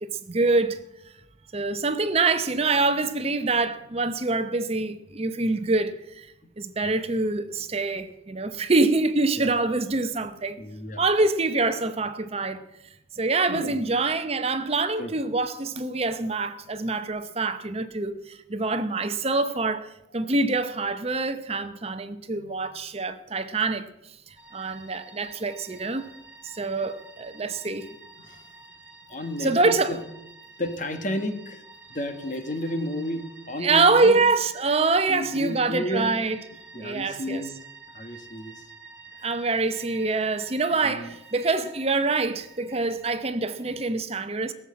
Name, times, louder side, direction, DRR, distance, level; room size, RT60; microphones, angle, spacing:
voice 1, 0.0-0.8 1.5-6.3 6.6-10.6 11.0-12.6 13.1-26.1 26.4-27.9 29.4-30.0 33.6-36.4 36.7-37.5 39.2-44.5, right 3 dB, 30° right, 0.7 m, -25 dB
voice 2, 10.6-11.0 13.2-13.8 15.0-15.1 22.3-22.5 28.2-28.4 29.1-30.0 30.6-31.6 31.9-34.2 35.1-36.1 36.7-37.5 37.9-38.6 40.8-41.1, left 1 dB, 40° left, 1.4 m, -32 dB
sound 1, 24.4-43.8, right 3 dB, 5° right, 3.7 m, -49 dB
17.5 x 7.4 x 8.5 m
head